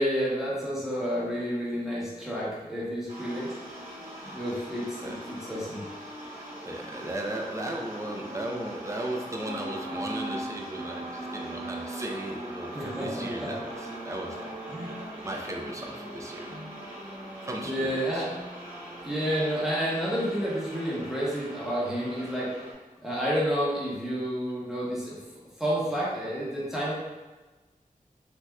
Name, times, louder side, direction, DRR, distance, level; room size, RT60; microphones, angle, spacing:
voice 1, 0.0-3.5 4.3-5.9 12.7-13.5 14.7-14.9 16.5-16.7 17.6-18.3 19.0-22.7 23.0-25.2 25.6-26.9, equal, 5° right, -8 dB, 1.0 m, -30 dB
sound 1, 3.1-22.7, right 1 dB, 70° right, 1.1 m, -40 dB
voice 2, 6.7-13.7 14.0-14.5 15.2-16.5 17.4-18.2, right 1 dB, 20° right, 0 dB, 0.5 m, -36 dB
3.5 x 2.7 x 2.2 m, 1.2 s
wide cardioid pair, 75°, 15 cm